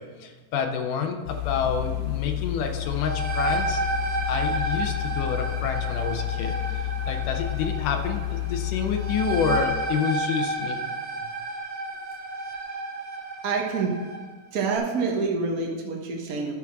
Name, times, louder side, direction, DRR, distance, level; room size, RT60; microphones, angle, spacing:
voice 1, 0.0-3.8 4.3-10.9, left 6 dB, 85° left, 4 dB, 2.3 m, -29 dB
sound 1, 1.3-9.6, left 17 dB, 55° left, 2.1 m, -30 dB
sound 2, 2.8-14.3, right 2 dB, 50° right, 1.2 m, -31 dB
voice 2, 13.4-13.9 14.5-16.6, right 4 dB, 85° right, -1 dB, 0.7 m, -27 dB
12.5 x 4.8 x 5.9 m, 1.4 s
omnidirectional pair, 3.6 m